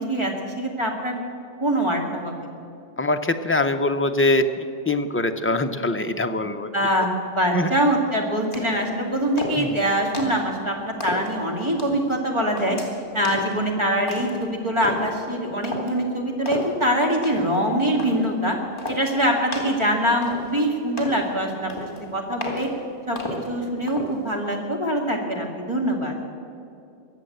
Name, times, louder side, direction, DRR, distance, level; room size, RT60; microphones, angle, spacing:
voice 1, 0.1-1.2 1.6-2.3 6.7-12.8 13.1-18.6 18.9-21.9 22.1-22.7 23.1-23.2 23.5-26.1, equal, 25° right, 0 dB, 2.2 m, -24 dB
voice 2, 3.0-4.4 4.9-6.7 7.5-7.7 9.6-9.8, left 2 dB, 15° left, 6 dB, 0.5 m, -23 dB
sound 1, 8.5-8.9 9.4-9.7 10.1-10.5 11.0-11.3 11.8-12.1 12.6-12.9 13.2-13.6 14.1-14.4 14.8-15.1 15.6-15.9 16.5-16.7 17.2-17.6 18.0-18.3 18.8-19.1 19.5-19.8 20.2-20.7 21.0-21.2 21.7-22.0 22.4-22.7 23.2-23.5 23.9-24.2, left 1 dB, 50° left, 2.6 m, -33 dB
22.5 x 7.6 x 7.9 m, 2.6 s
omnidirectional pair, 1.1 m